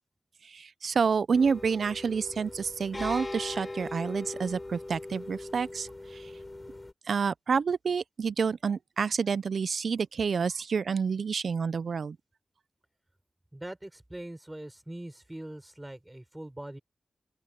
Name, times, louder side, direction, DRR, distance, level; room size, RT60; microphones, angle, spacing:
voice 1, 0.4-6.3 7.1-12.2, right 5 dB, 70° right, 0.5 m, -29 dB
sound 1, 1.3-6.9, left 2 dB, 25° left, 3.9 m, -40 dB
voice 2, 13.5-16.8, right 1 dB, 15° right, 6.3 m, -42 dB
open air
wide cardioid pair, 80°, 0 cm